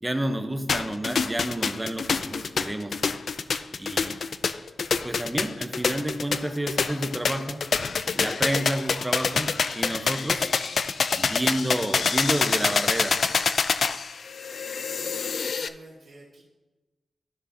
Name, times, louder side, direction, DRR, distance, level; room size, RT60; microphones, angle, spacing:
voice 1, 0.0-2.9 3.7-4.2 5.0-7.6 8.2-10.5 11.2-13.2, right 1 dB, 15° right, 7 dB, 0.8 m, -30 dB
sound 1, 0.7-15.7, left 5 dB, 65° left, 0.3 m, -26 dB
sound 2, 9.3-11.6, right 2 dB, 50° right, 2.2 m, -57 dB
voice 2, 14.9-16.4, right 2 dB, 80° right, -7 dB, 1.5 m, -49 dB
12.5 x 6.3 x 2.8 m, 1.2 s
cardioid pair, 70°, 0 cm